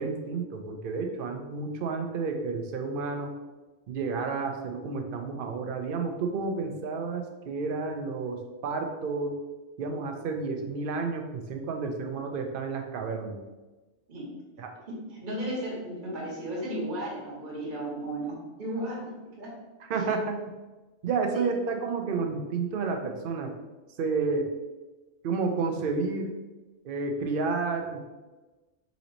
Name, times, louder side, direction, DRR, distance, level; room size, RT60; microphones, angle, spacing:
voice 1, 0.0-3.3 3.9-9.4 9.8-13.4 14.6-14.7 19.9-20.4 21.0-23.5 24.0-24.5 25.2-26.3 26.8-28.0, right 4 dB, 55° right, 4 dB, 0.6 m, -31 dB
voice 2, 14.9-19.5 19.9-20.0 21.3-21.5, right 1 dB, 40° right, -5 dB, 1.3 m, -35 dB
4.1 x 3.0 x 3.9 m, 1.2 s
omnidirectional pair, 1.3 m